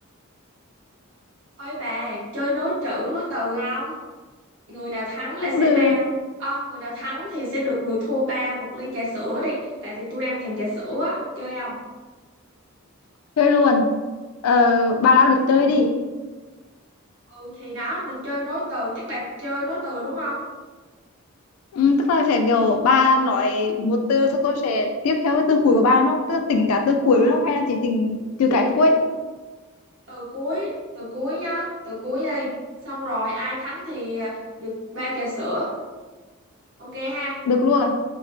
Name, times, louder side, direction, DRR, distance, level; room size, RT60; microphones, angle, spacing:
voice 1, 1.6-3.9 4.7-6.1 6.4-11.8 17.3-20.4 30.1-32.5 32.8-35.7 36.8-37.4, left 1 dB, 60° right, -7 dB, 1.1 m, -28 dB
voice 2, 5.4-6.0 13.4-13.9 14.4-15.9 21.7-29.1 37.5-37.9, left 3 dB, 85° left, 5 dB, 0.3 m, -19 dB
3.0 x 2.1 x 2.6 m, 1.3 s
head